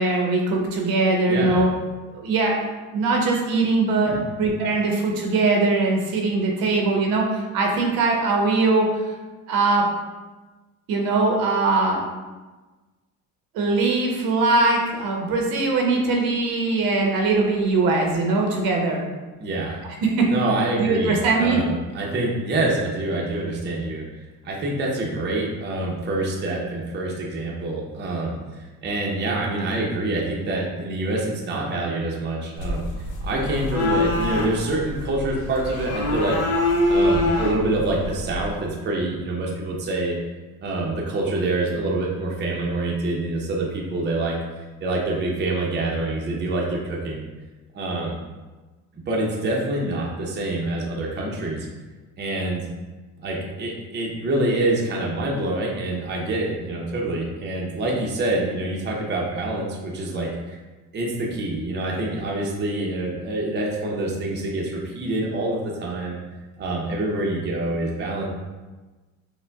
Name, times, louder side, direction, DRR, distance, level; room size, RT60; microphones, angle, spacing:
voice 1, 0.0-1.7 2.1-2.5 2.9-9.1 9.5-9.8 10.9-12.0 13.5-19.0 20.0-20.3 20.8-21.6, right 3 dB, 75° right, 1 dB, 0.9 m, -21 dB
voice 2, 1.3-1.6 4.0-4.2 19.4-19.8 20.3-24.0 24.4-32.9 33.2-40.2 40.6-44.4 44.8-47.2 47.7-48.2 49.1-51.7 52.2-52.7 53.2-60.6 60.9-66.2 66.6-68.3, right 2 dB, 30° right, -2 dB, 0.6 m, -26 dB
sound 1, 32.6-38.6, left 1 dB, 85° left, 0.7 m, -25 dB
5.7 x 2.2 x 2.3 m, 1.2 s
cardioid pair, 115°, 36 cm